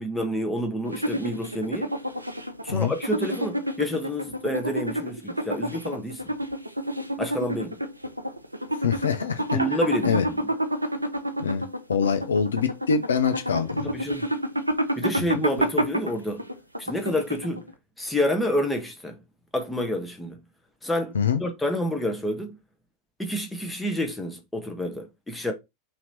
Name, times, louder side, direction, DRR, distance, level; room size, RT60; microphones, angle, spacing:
voice 1, 0.0-1.9 2.6-6.3 7.2-7.8 9.5-10.5 13.8-14.3 15.0-16.4 16.8-17.7 18.0-19.2 19.5-20.4 20.8-22.5 23.2-25.5, left 1 dB, 5° left, 0.9 m, -29 dB
sound 1, 0.8-17.7, equal, 85° right, 0.4 m, -29 dB
voice 2, 8.8-9.6 10.0-10.2 11.4-11.6 11.9-13.9 21.1-21.4, left 6 dB, 70° left, 0.5 m, -24 dB
3.0 x 2.9 x 4.0 m
figure-of-eight pair, 90°, 0 cm